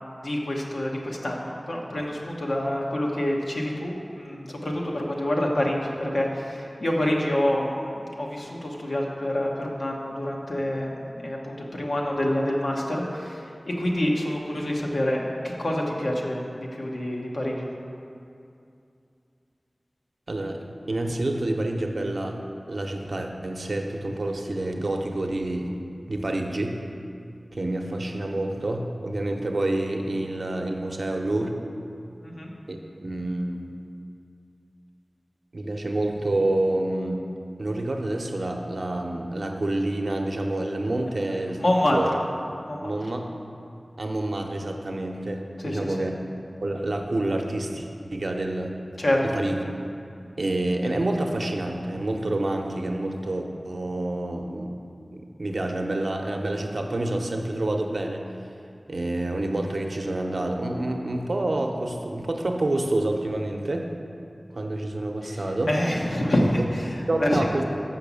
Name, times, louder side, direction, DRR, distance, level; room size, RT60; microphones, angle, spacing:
voice 1, 0.2-17.7 32.2-32.5 41.2-42.2 42.7-42.9 45.6-46.1 49.0-49.2 65.2-67.6, left 1 dB, 75° left, -2 dB, 1.0 m, -27 dB
voice 2, 20.3-20.6 20.9-22.4 22.7-25.7 26.1-26.8 27.5-31.6 32.7-33.7 35.5-37.2 37.6-41.6 41.9-42.1 42.8-43.2 44.0-46.1 46.6-48.7 49.2-49.6 50.4-54.8 55.1-58.2 58.9-63.9 64.5-65.7 67.1-67.6, right 1 dB, 70° right, 3 dB, 0.7 m, -28 dB
6.0 x 5.6 x 6.9 m, 2.5 s
wide cardioid pair, 55°, 0 cm